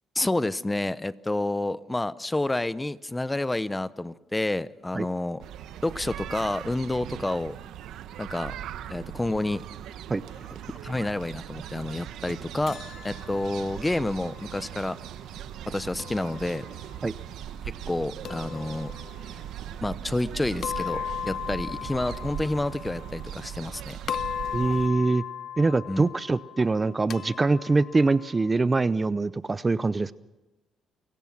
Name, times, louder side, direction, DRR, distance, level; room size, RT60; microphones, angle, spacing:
voice 1, 0.1-5.5 5.8-7.5 8.2-8.5 8.9-9.7 10.8-12.8 13.0-15.0 15.7-16.7 17.6-18.9 19.8-24.0 25.9-26.1, left 2 dB, 15° left, 16 dB, 0.7 m, -29 dB
sound 1, 5.4-24.9, right 10 dB, 85° right, 1.0 m, -39 dB
sound 2, 12.7-14.8 16.0-17.0 18.2-19.4 20.6-23.7 24.1-28.5, left 9 dB, 60° left, 0.7 m, -38 dB
voice 2, 24.5-25.2 25.6-30.1, right 3 dB, 25° right, 16 dB, 0.6 m, -24 dB
29.5 x 17.0 x 6.0 m, 1.1 s
cardioid pair, 90°, 0 cm